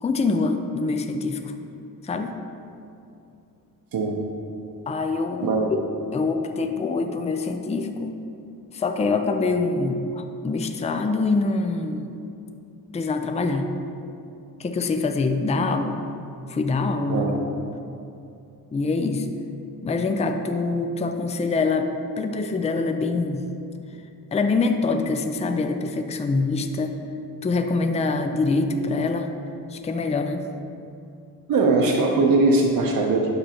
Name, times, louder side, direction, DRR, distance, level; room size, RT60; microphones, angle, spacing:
voice 1, 0.0-1.5 2.0-2.4 4.9-5.8 6.1-8.2 8.7-12.1 12.9-13.7 14.6-16.0 16.5-17.3 18.7-19.3 19.8-23.5 24.3-27.0 27.4-29.3 29.7-30.5, left 3 dB, 20° left, 6 dB, 0.4 m, -25 dB
voice 2, 31.5-33.3, right 3 dB, 70° right, 0 dB, 0.8 m, -20 dB
9.5 x 6.6 x 2.9 m, 2.6 s
wide cardioid pair, 115°, 36 cm